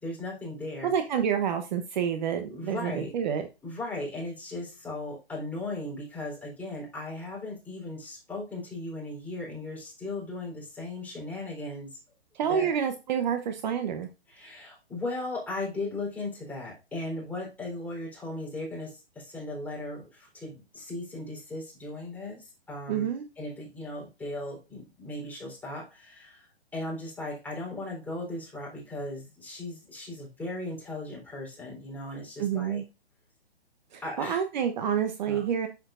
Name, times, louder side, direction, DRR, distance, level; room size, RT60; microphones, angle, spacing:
voice 1, 0.0-0.9 2.5-3.1 3.6-12.0 12.5-12.7 14.3-23.1 23.4-26.5 26.7-32.8 34.0-34.4 35.3-35.4, left 2 dB, 5° left, -3 dB, 3.8 m, -37 dB
voice 2, 0.8-3.5 12.3-14.1 22.9-23.3 32.4-32.8 33.9-35.7, right 8 dB, 45° right, 7 dB, 1.0 m, -28 dB
8.6 x 7.2 x 2.5 m, 0.28 s
hypercardioid pair, 140°, 32 cm